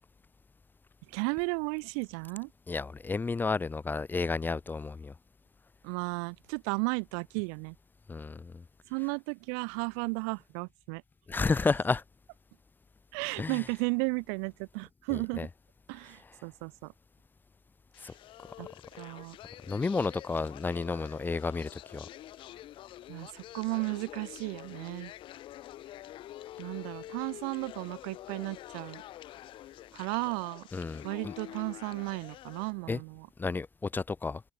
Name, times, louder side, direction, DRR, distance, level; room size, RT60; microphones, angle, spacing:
voice 1, 1.1-2.5 5.8-7.7 8.9-11.0 13.1-15.5 15.9-16.9 18.6-18.7 19.0-19.4 23.1-25.1 26.6-29.0 29.9-30.7 31.0-33.3, right 40 dB or more, 80° right, 1.6 m, -34 dB
voice 2, 2.7-5.1 8.1-8.6 11.3-12.0 13.4-13.6 15.1-15.5 18.0-18.1 19.7-22.1 30.7-31.3 32.9-33.0 33.4-34.4, left 4 dB, 20° left, 1.1 m, -31 dB
sound 1, 17.9-32.7, left 14 dB, 55° left, 3.7 m, -47 dB
supercardioid pair, 95°, 10 cm